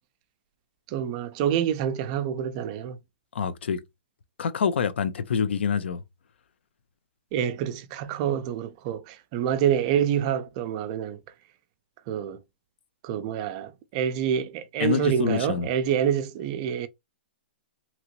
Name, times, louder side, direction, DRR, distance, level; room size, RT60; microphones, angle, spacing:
voice 1, 0.9-3.0 7.3-11.2 12.1-12.4 13.0-16.9, right 9 dB, 35° right, 0.4 m, -27 dB
voice 2, 3.3-3.8 4.4-6.0 14.8-15.7, left 7 dB, 80° left, 0.5 m, -26 dB
2.9 x 2.6 x 2.9 m
hypercardioid pair, 145°, 6 cm